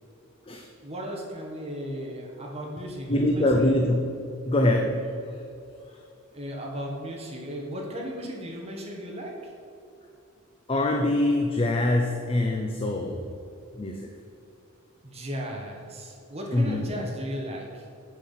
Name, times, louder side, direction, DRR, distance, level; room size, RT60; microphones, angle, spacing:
voice 1, 0.8-3.9 6.3-9.5 15.0-17.9, equal, 30° right, -1 dB, 1.5 m, -36 dB
voice 2, 3.1-4.1 4.5-5.4 10.7-13.3 13.7-14.1 16.5-16.9, left 1 dB, 25° left, 2 dB, 0.6 m, -24 dB
8.3 x 7.6 x 5.7 m, 2.6 s
head